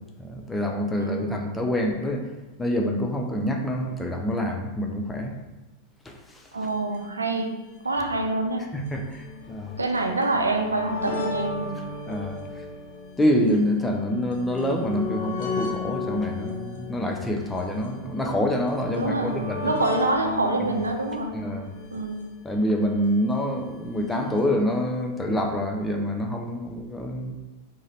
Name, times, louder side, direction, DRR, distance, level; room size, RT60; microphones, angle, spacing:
voice 1, 0.2-2.3 2.6-5.4 6.0-6.5 8.7-9.7 12.1-12.7 13.2-19.7 20.6-20.7 21.3-21.7 22.4-27.3, equal, 10° left, 2 dB, 0.6 m, -26 dB
voice 2, 1.0-1.5 6.5-7.6 7.8-8.7 9.8-11.7 19.0-21.4 21.9-22.3, right 3 dB, 75° right, 3 dB, 0.5 m, -26 dB
sound 1, 6.7-6.8 6.9-7.0 7.9-23.1 24.1-24.2 24.4-24.5, left 4 dB, 55° left, 0.9 m, -35 dB
3.8 x 3.1 x 4.1 m, 1.1 s
figure-of-eight pair, 90°, 0 cm